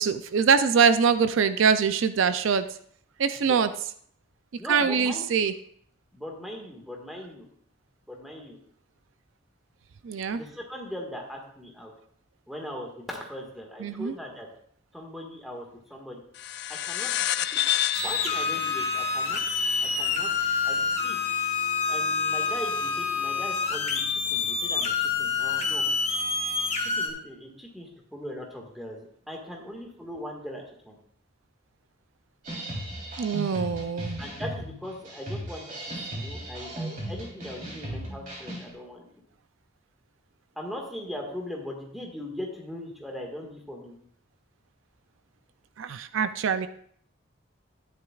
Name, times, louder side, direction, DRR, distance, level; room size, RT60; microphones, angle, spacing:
voice 1, 0.0-2.7 3.2-3.7 4.7-5.5 10.0-10.4 13.8-14.1 33.2-34.2 45.8-46.7, right 6 dB, 75° right, 12 dB, 0.4 m, -23 dB
voice 2, 3.3-3.7 4.6-5.3 6.1-7.4 8.1-8.6 10.3-11.9 12.5-14.5 14.9-16.2 16.7-17.6 18.0-19.4 19.8-20.3 20.6-21.2 21.9-25.8 26.8-31.0 34.2-39.1 40.5-44.0, equal, ahead, 0 dB, 1.7 m, -40 dB
sound 1, 16.3-21.3, left 12 dB, 55° left, 0.3 m, -31 dB
sound 2, 17.9-27.1, left 5 dB, 30° left, 1.2 m, -27 dB
sound 3, 32.4-38.7, right 1 dB, 40° right, 3.4 m, -36 dB
12.5 x 10.0 x 2.4 m, 0.62 s
head